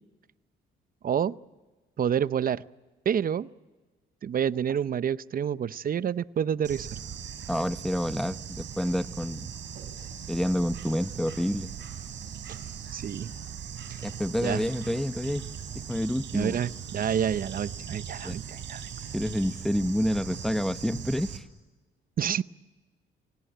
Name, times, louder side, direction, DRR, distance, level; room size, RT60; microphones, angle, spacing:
voice 1, 1.0-1.3 2.0-2.6 3.1-3.5 4.2-6.9 12.5-12.6 12.9-13.3 13.9-14.1 14.4-14.6 16.3-18.8 22.2-22.4, right 8 dB, 45° right, 17 dB, 0.7 m, -28 dB
Bird / Insect, 6.6-21.4, right 8 dB, 70° right, 3.3 m, -39 dB
voice 2, 7.5-9.5 10.3-11.7 14.0-15.5 15.9-16.6 18.2-18.4 19.1-21.4, equal, ahead, 13 dB, 0.8 m, -28 dB
26.0 x 18.0 x 9.2 m, 1.2 s
cardioid pair, 90°, 20 cm